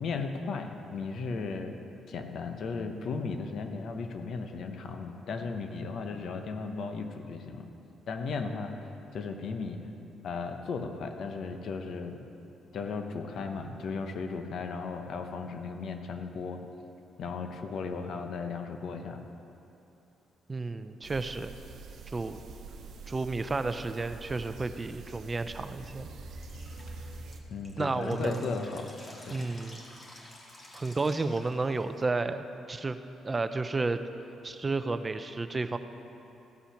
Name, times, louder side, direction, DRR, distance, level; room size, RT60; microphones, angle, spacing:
voice 1, 0.0-1.8 2.1-7.7 8.1-9.8 10.2-12.2 12.7-16.6 17.2-19.2 27.5-28.9 29.2-29.5, left 4 dB, 65° left, 6 dB, 0.9 m, -36 dB
voice 2, 20.5-21.5 22.1-22.4 23.1-26.1 27.8-28.5 29.3-29.9 30.7-33.0 33.2-34.0 34.4-35.8, right 3 dB, 25° right, 10 dB, 0.5 m, -32 dB
Distant airplane over forrest field, 21.0-27.4, right 3 dB, 65° right, 0.9 m, -45 dB
Drip, 26.4-32.0, left 1 dB, 35° left, 1.9 m, -51 dB
15.0 x 5.6 x 5.8 m, 2.9 s
cardioid pair, 90°, 0 cm